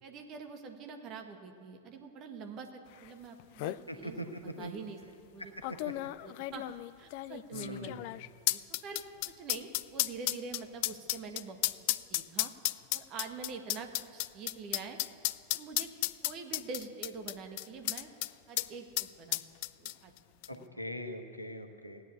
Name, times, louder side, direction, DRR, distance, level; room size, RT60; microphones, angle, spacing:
voice 1, 0.0-4.2 4.6-5.0 5.3-5.5 6.2-8.1 8.5-11.6 11.9-12.5 12.9-15.0 15.5-15.9 16.2-18.1 18.5-19.4 19.8-20.1 20.5-20.7, right 4 dB, 35° right, 4 dB, 1.7 m, -45 dB
sound 1, 3.1-3.2 3.4-3.8 4.6-4.7 5.6-18.3 18.6-18.7 19.0-20.2 20.4-20.5, left 18 dB, 45° left, 0.3 m, -34 dB
voice 2, 3.9-4.7 5.8-5.9 7.5-8.0 20.5-22.0, equal, 85° left, 6 dB, 1.2 m, -41 dB
16.5 x 9.6 x 8.2 m, 2.2 s
figure-of-eight pair, 90°, 0 cm